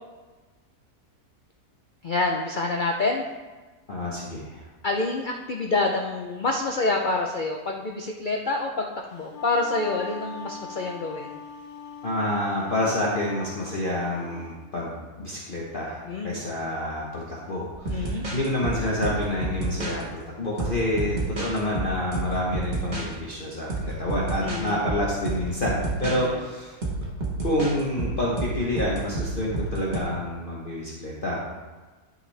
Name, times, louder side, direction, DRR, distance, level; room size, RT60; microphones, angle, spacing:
voice 1, 2.0-3.2 4.8-11.4 16.0-16.5 17.9-18.3 24.4-24.9 26.0-26.4, left 3 dB, 85° left, 2 dB, 0.4 m, -27 dB
voice 2, 3.9-4.6 12.0-16.0 16.2-26.7 27.4-31.5, left 1 dB, 40° left, -5 dB, 1.1 m, -28 dB
Wind instrument woodwind instrument, 9.1-14.5, left 5 dB, 55° left, 0.8 m, -41 dB
sound 1, 17.7-20.0 20.6-23.1 23.7-24.6 24.9-26.2 26.8-30.0, right 2 dB, 30° right, 1.4 m, -30 dB
11.5 x 5.3 x 3.3 m, 1.3 s
omnidirectional pair, 1.6 m